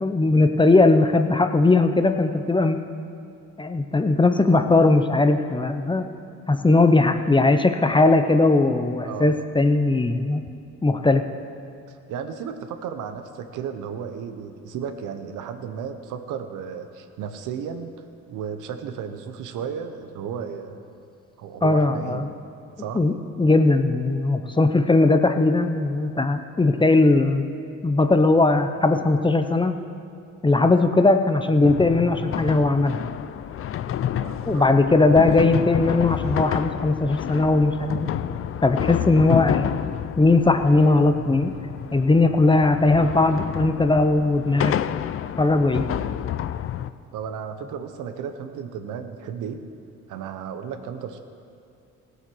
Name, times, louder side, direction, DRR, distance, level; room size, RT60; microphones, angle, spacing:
voice 1, 0.0-2.8 3.6-6.1 6.5-10.4 10.8-11.2 21.6-22.3 22.9-27.5 27.8-29.8 30.4-33.0 34.5-38.1 38.6-39.7 40.2-41.5 41.9-44.8 45.4-45.8, left 2 dB, 15° left, 8 dB, 0.7 m, -19 dB
voice 2, 9.0-9.4 11.9-17.9 18.3-20.8 21.4-22.3 22.8-23.0 34.2-34.8 46.0-46.1 47.1-49.6 50.1-51.2, right 7 dB, 90° right, 8 dB, 1.0 m, -34 dB
sound 1, 31.6-46.9, left 10 dB, 50° left, 0.4 m, -29 dB
16.0 x 8.1 x 6.2 m, 2.5 s
cardioid pair, 90°, 30 cm